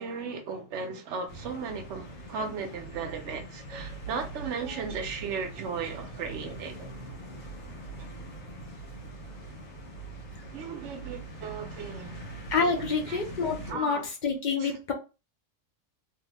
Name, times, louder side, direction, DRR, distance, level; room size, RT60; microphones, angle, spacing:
voice 1, 0.0-6.9 8.0-8.1 10.5-12.2 12.7-14.1 14.6-14.8, right 5 dB, 70° right, 0.9 m, -36 dB
sound 1, 1.3-13.7, right 2 dB, 85° left, 1.5 m, -42 dB
voice 2, 12.5-14.9, left 5 dB, 55° left, 0.5 m, -28 dB
3.1 x 2.0 x 3.3 m
omnidirectional pair, 1.3 m